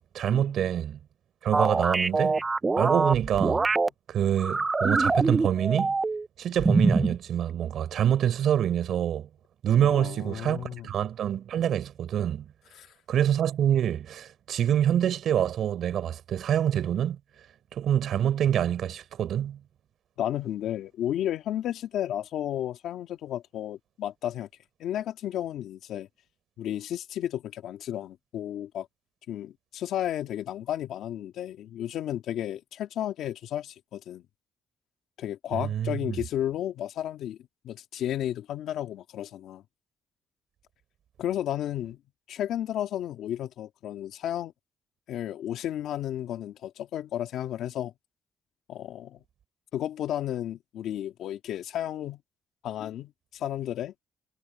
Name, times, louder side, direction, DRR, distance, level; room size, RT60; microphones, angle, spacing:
voice 1, 0.1-1.0 1.4-2.4 2.8-3.7 4.1-5.9 6.4-9.3 9.6-12.5 13.1-17.2 17.7-19.6 35.5-36.2, right 10 dB, 70° right, 4.2 m, -26 dB
sound 1, 1.5-3.9 4.4-6.3 6.6-7.1, right 3 dB, 25° right, 0.6 m, -24 dB
voice 2, 9.8-10.9 12.8-12.9 20.2-24.5 24.8-26.1 26.6-28.9 29.3-34.2 35.2-37.4 37.6-39.6 41.2-42.0 42.3-44.5 45.1-47.9 48.7-49.2 49.7-52.2 52.6-53.9, left 11 dB, 80° left, 1.9 m, -33 dB
cardioid pair, 90°, 0 cm